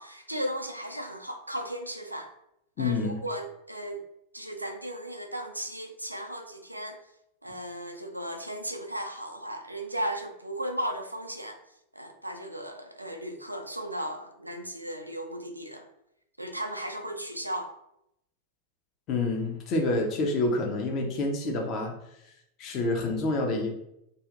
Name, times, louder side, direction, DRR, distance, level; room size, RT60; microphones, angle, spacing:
voice 1, 0.0-2.3 2.8-4.0 4.3-7.0 7.4-11.6 11.9-15.9 16.4-17.7, right 1 dB, 85° right, 4 dB, 0.4 m, -36 dB
voice 2, 2.8-3.2 19.1-21.9 22.6-23.7, left 2 dB, 35° left, 1 dB, 0.7 m, -27 dB
2.7 x 2.5 x 3.5 m, 0.81 s
figure-of-eight pair, 90°, 0 cm